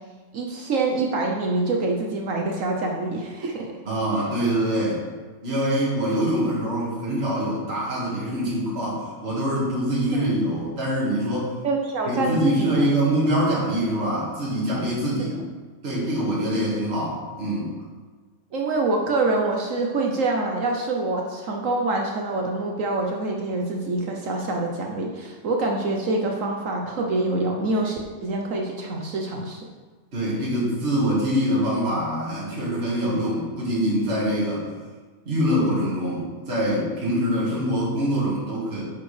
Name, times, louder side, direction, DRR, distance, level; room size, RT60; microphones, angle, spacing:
voice 1, 0.3-3.8 11.6-12.7 18.5-29.6, right 2 dB, 65° right, 1 dB, 1.2 m, -25 dB
voice 2, 3.9-5.0 5.4-11.5 12.1-15.4 15.8-17.7 30.1-34.6 35.3-38.9, equal, 45° right, -7 dB, 2.1 m, -24 dB
9.2 x 7.3 x 3.3 m, 1.4 s
omnidirectional pair, 1.5 m